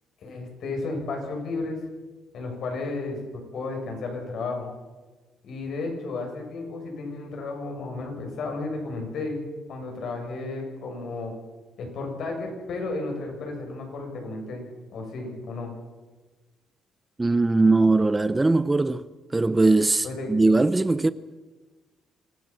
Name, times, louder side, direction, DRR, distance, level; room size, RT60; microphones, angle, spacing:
voice 1, 0.2-1.8 2.3-3.2 3.5-4.7 5.4-11.3 11.8-14.6 14.9-15.7 20.0-20.4, left 3 dB, 60° left, 8.0 m, -33 dB
voice 2, 17.2-19.1 19.3-21.1, right 3 dB, 15° right, 0.6 m, -20 dB
26.5 x 17.0 x 7.7 m
cardioid pair, 125°, 0 cm